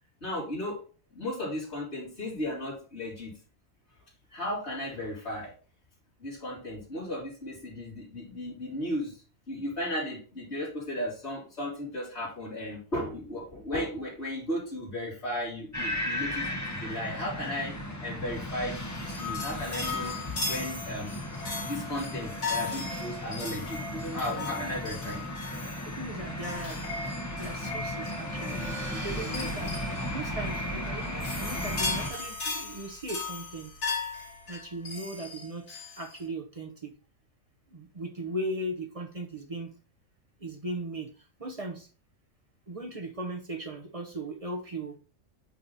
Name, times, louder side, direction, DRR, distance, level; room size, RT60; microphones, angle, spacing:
voice 1, 0.2-0.8 1.1-3.3 4.3-5.5 6.2-9.2 9.5-17.7 18.0-20.2 20.5-21.2 21.7-25.2 25.6-25.9 28.2-30.0, left 1 dB, 55° left, -6 dB, 3.4 m, -35 dB
sound 1, 15.7-32.1, left 1 dB, 15° left, 0.7 m, -36 dB
sound 2, 18.7-36.2, left 4 dB, 80° left, 2.0 m, -37 dB
voice 2, 25.9-27.0 27.3-28.6 29.0-29.7 30.1-33.7 34.5-36.9 37.7-39.7 40.4-41.1 41.4-41.9 42.7-44.9, right 1 dB, 35° right, 4 dB, 0.7 m, -37 dB
sound 3, 27.8-34.8, right 3 dB, 30° left, 1.9 m, -48 dB
8.5 x 2.9 x 3.9 m, 0.38 s
omnidirectional pair, 1.4 m